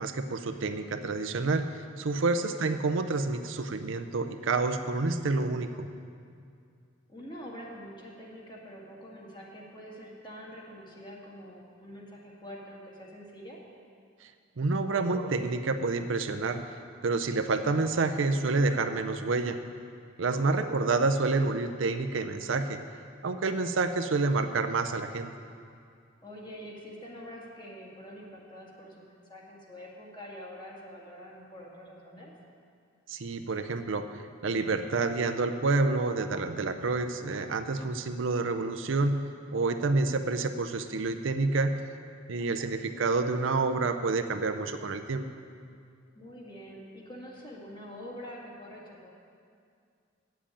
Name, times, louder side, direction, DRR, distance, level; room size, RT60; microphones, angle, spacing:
voice 1, 0.0-5.9 14.6-16.7 17.0-19.6 20.2-22.8 23.2-25.3 33.1-39.2 39.5-41.8 42.3-45.3, right 3 dB, 70° right, 8 dB, 0.6 m, -28 dB
voice 2, 2.2-2.7 7.1-13.6 20.2-20.7 26.2-32.3 42.4-42.7 46.2-49.1, equal, 25° left, -3 dB, 1.9 m, -46 dB
8.8 x 7.5 x 8.5 m, 2.3 s
head